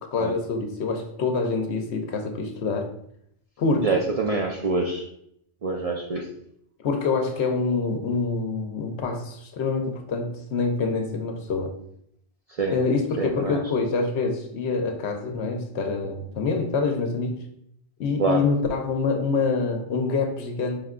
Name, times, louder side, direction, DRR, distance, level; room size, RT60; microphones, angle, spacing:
voice 1, 0.1-2.9 3.6-3.9 6.8-11.7 12.7-17.4 18.0-20.8, left 4 dB, 70° left, 4 dB, 0.9 m, -26 dB
voice 2, 3.8-5.0 5.6-6.3 12.6-12.7 13.2-13.6 18.2-18.4, right 3 dB, 60° right, 0 dB, 0.3 m, -25 dB
5.0 x 2.2 x 3.6 m, 0.73 s
omnidirectional pair, 1.2 m